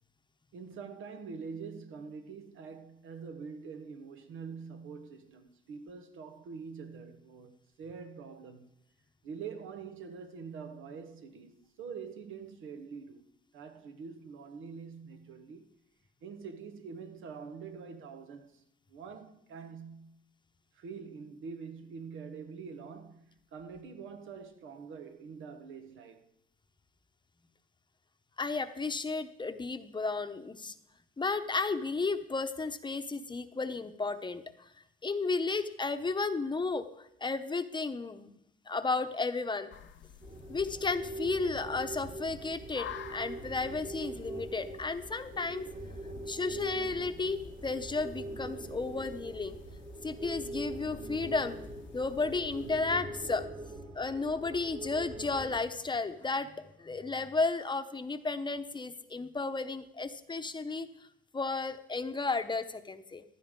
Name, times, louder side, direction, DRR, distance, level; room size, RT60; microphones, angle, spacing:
voice 1, 0.5-8.7 9.2-15.7 16.2-18.5 18.9-20.2 20.7-26.3, right 5 dB, 85° right, 1.2 m, -45 dB
voice 2, 28.4-30.7 31.2-34.7 35.0-38.4 38.7-39.7 40.5-45.7 46.3-49.6 50.0-51.6 51.9-53.4 53.9-60.9 61.3-63.2, left 3 dB, 25° left, 0.8 m, -33 dB
sound 1, 39.7-52.8, left 9 dB, 70° left, 0.8 m, -51 dB
sound 2, 40.2-55.6, right 1 dB, 35° right, 1.6 m, -43 dB
15.0 x 11.5 x 3.7 m
cardioid pair, 90°, 20 cm